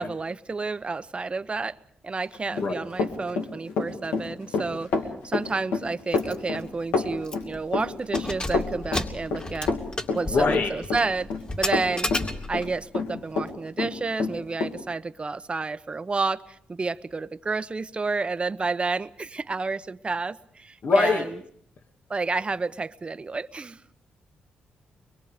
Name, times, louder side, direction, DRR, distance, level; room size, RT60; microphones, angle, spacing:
voice 1, 0.0-1.8 2.0-4.9 5.2-9.7 10.1-11.3 11.6-12.1 12.5-21.4 22.1-23.8, right 4 dB, 30° right, 0.9 m, -30 dB
Run, 2.3-13.5 13.8-14.7, left 4 dB, 85° left, 2.6 m, -28 dB
voice 2, 2.5-2.8 10.3-10.7 20.8-21.2, left 3 dB, 60° left, 2.3 m, -22 dB
Keys jangling, 6.1-6.3 6.7-6.8 7.2-7.6 8.0-12.8, left 2 dB, 25° left, 2.5 m, -33 dB
23.5 x 22.5 x 5.1 m
cardioid pair, 70°, 4 cm